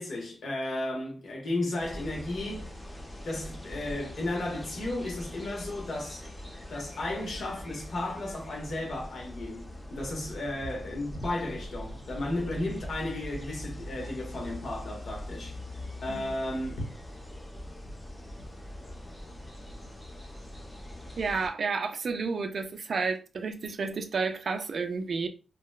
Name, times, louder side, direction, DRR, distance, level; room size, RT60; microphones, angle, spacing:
voice 1, 0.0-2.7 3.2-6.2 6.7-15.6 16.0-16.8, left 1 dB, 65° left, 1.0 m, -34 dB
sound 1, 1.8-21.5, left 1 dB, 15° left, 0.7 m, -42 dB
voice 2, 21.2-25.3, right 4 dB, 60° right, 0.3 m, -31 dB
2.8 x 2.1 x 2.2 m
wide cardioid pair, 105°, 0 cm